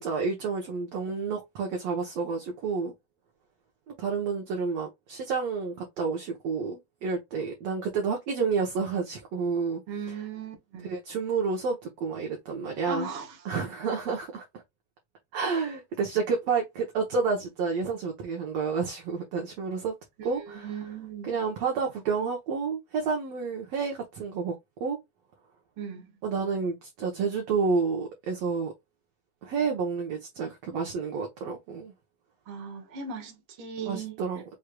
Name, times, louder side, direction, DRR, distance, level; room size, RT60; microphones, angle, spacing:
voice 1, 0.0-2.9 3.9-9.8 10.8-13.1 13.4-14.4 15.3-19.9 20.2-20.7 21.3-24.5 24.8-25.0 26.2-28.7 29.4-31.9 33.9-34.4, right 5 dB, 70° right, 1.6 m, -30 dB
voice 2, 9.9-11.0 12.9-13.4 20.2-21.4 25.8-26.2 32.5-34.2, right 5 dB, 50° right, 1.7 m, -38 dB
6.3 x 3.2 x 2.3 m
omnidirectional pair, 4.0 m